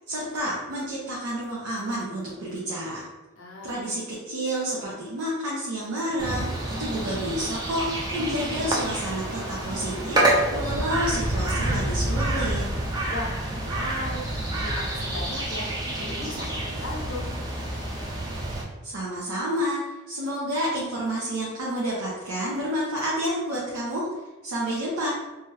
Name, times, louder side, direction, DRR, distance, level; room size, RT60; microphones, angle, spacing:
voice 1, 0.1-3.1 3.6-12.7 18.8-24.1 24.4-25.1, equal, 90° right, -6 dB, 0.6 m, -29 dB
voice 2, 3.4-4.0 13.1-14.3 14.6-15.7 16.0-17.3, left 2 dB, 60° left, -1 dB, 0.6 m, -37 dB
sound 1, 6.2-18.6, right 1 dB, 15° right, 0.3 m, -28 dB
2.8 x 2.3 x 3.2 m, 1.1 s
head